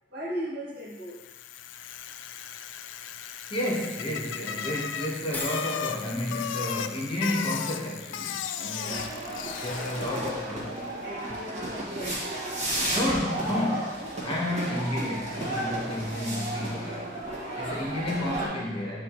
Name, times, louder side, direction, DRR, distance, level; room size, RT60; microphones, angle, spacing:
voice 1, 0.1-1.2 8.8-9.0 9.4-12.6, equal, 60° right, -6 dB, 2.0 m, -39 dB
Bicycle, 1.0-10.4, left 8 dB, 85° left, 0.4 m, -36 dB
voice 2, 3.2-9.1 9.5-10.8 12.9-19.0, left 1 dB, 30° left, -3 dB, 1.3 m, -31 dB
Shatter, 5.3-5.9, left 2 dB, 10° left, 0.8 m, -35 dB
sound 1, 8.9-18.5, right 1 dB, 40° right, 1.8 m, -33 dB
8.8 x 4.9 x 3.0 m, 1.1 s
head